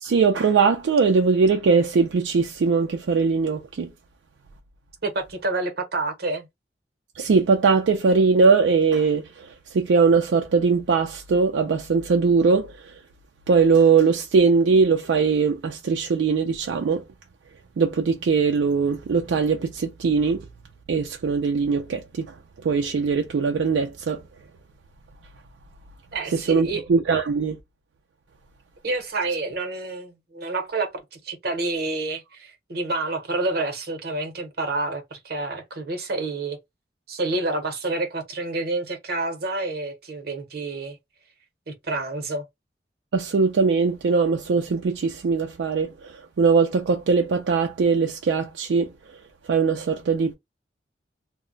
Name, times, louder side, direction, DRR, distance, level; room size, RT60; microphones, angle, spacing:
voice 1, 0.0-3.9 7.2-12.9 13.5-17.0 17.8-20.4 20.9-22.3 22.6-24.2 26.3-27.6 43.1-48.9 49.5-50.3, right 5 dB, 85° right, 0.4 m, -21 dB
voice 2, 5.0-6.5 26.1-26.8 28.8-36.6 37.1-41.0 41.7-42.4, right 2 dB, 60° right, 0.8 m, -28 dB
2.1 x 2.0 x 3.7 m
head